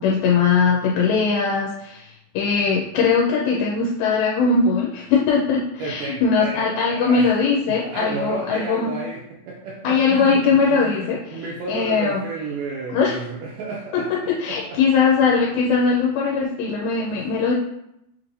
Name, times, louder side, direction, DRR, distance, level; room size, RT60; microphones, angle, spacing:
voice 1, 0.0-2.0 2.4-8.9 9.8-11.2 11.7-12.2 12.9-13.2 14.4-17.5, left 5 dB, 85° left, -3 dB, 2.4 m, -20 dB
voice 2, 5.8-7.4 7.7-14.8, right 3 dB, 80° right, -4 dB, 1.9 m, -32 dB
6.2 x 3.0 x 2.6 m, 0.80 s
omnidirectional pair, 4.3 m